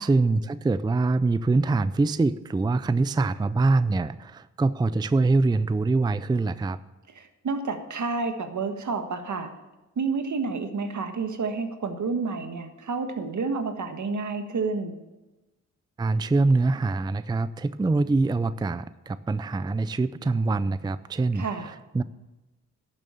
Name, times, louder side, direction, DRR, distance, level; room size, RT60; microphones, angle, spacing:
voice 1, 0.0-6.8 16.0-22.0, right 3 dB, 15° right, 14 dB, 0.4 m, -24 dB
voice 2, 7.1-9.5 10.0-15.0 21.3-21.7, right 4 dB, 70° right, 6 dB, 1.6 m, -30 dB
12.0 x 7.2 x 7.0 m, 1.1 s
cardioid pair, 80°, 31 cm